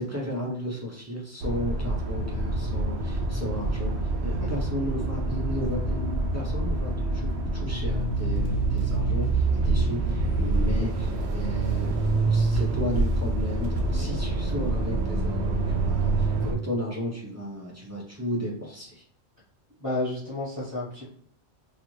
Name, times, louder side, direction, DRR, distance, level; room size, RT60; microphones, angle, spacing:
voice 1, 0.0-19.0, equal, 25° right, -3 dB, 0.3 m, -34 dB
sound 1, 1.4-16.5, right 2 dB, 70° right, 0.8 m, -26 dB
voice 2, 19.8-21.1, left 2 dB, 15° left, -11 dB, 1.0 m, -31 dB
2.5 x 2.4 x 3.0 m, 0.66 s
omnidirectional pair, 1.3 m